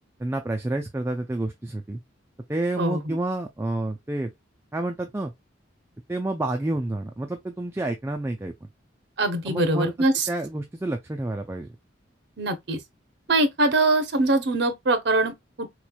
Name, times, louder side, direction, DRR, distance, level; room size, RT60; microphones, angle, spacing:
voice 1, 0.2-2.0 2.5-4.3 4.7-5.3 6.1-8.7 9.5-9.9 10.3-11.7, right 2 dB, 15° right, 0.3 m, -29 dB
voice 2, 2.8-3.2 9.2-10.3 12.4-12.8 13.3-15.7, right 2 dB, 60° right, 0.7 m, -23 dB
4.0 x 3.1 x 2.2 m
head